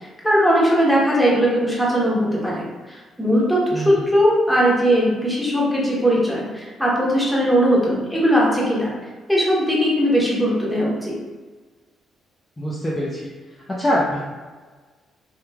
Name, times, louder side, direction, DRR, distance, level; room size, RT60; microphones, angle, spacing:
voice 1, 0.2-8.9 9.3-11.1, equal, ahead, -6 dB, 0.9 m, -19 dB
voice 2, 12.6-13.2 13.7-14.2, equal, 20° left, -6 dB, 0.4 m, -23 dB
3.0 x 2.4 x 2.2 m, 1.4 s
cardioid pair, 90°, 0 cm